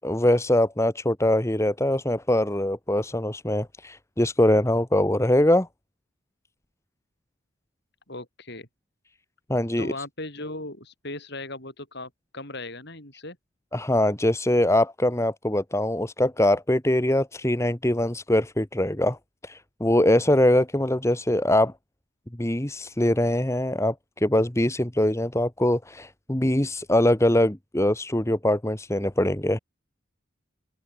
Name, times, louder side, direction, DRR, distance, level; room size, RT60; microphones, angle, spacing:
voice 1, 0.0-5.7 9.5-9.9 13.7-19.2 19.4-21.7 22.4-29.6, left 1 dB, 15° left, 1.2 m, -23 dB
voice 2, 8.1-8.7 9.8-13.4, left 2 dB, 50° left, 7.2 m, -37 dB
open air
head